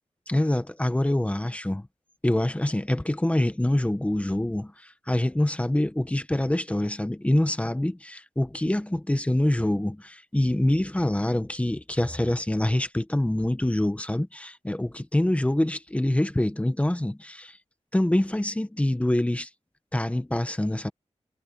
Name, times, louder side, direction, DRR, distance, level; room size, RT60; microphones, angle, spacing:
voice 1, 0.3-1.9 2.2-17.6 17.9-19.5 19.9-20.9, left 1 dB, 10° left, 1.1 m, -25 dB
wide cardioid pair, 130°, 12 cm